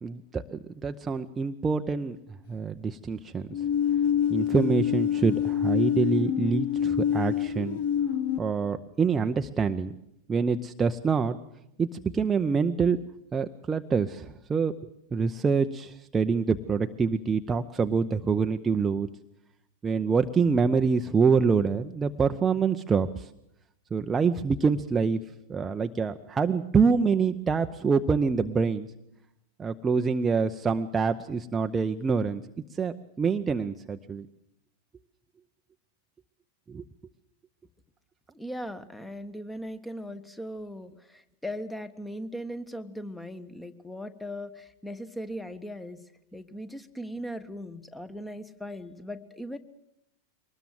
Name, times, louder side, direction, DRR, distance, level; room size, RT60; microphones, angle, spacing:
voice 1, 0.0-2.2 2.5-3.5 4.3-7.8 8.4-9.9 10.3-11.4 11.8-13.0 13.3-14.7 15.1-19.1 19.8-23.3 23.9-25.2 25.5-28.9 29.6-32.4 32.7-34.3 36.7-36.8, right 5 dB, 15° right, 7 dB, 0.8 m, -26 dB
sound 1, 3.5-8.4, left 9 dB, 55° left, 1.2 m, -26 dB
voice 2, 38.3-46.0 46.3-49.6, equal, 5° left, 12 dB, 1.4 m, -38 dB
23.5 x 20.0 x 7.6 m, 0.81 s
figure-of-eight pair, 90°, 0 cm